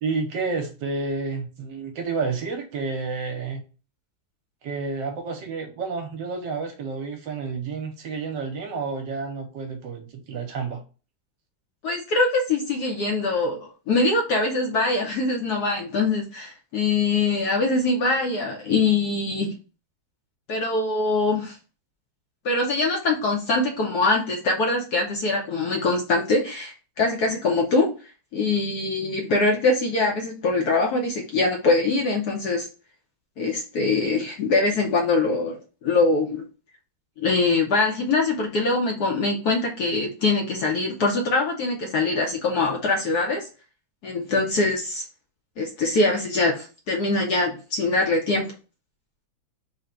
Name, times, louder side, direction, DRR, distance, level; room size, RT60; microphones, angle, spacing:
voice 1, 0.0-3.6 4.6-10.8, right 4 dB, 70° right, 1.3 m, -30 dB
voice 2, 11.8-19.5 20.5-21.6 22.4-27.9 28.3-32.7 33.4-36.4 37.2-43.5 44.0-45.0 45.6-48.5, left 3 dB, 65° left, 1.1 m, -23 dB
3.7 x 2.1 x 4.3 m
omnidirectional pair, 2.2 m